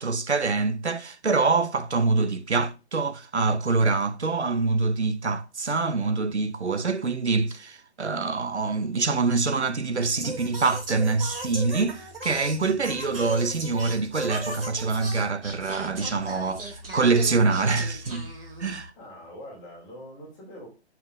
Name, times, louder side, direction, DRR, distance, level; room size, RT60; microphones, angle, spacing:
voice 1, 0.0-18.3 18.6-18.9, right 4 dB, 80° right, 0.7 m, -25 dB
Singing, 10.2-18.9, right 2 dB, 55° right, 1.9 m, -37 dB
voice 2, 19.0-20.7, equal, 15° left, 2.0 m, -43 dB
6.0 x 3.6 x 4.6 m
figure-of-eight pair, 140°, 33 cm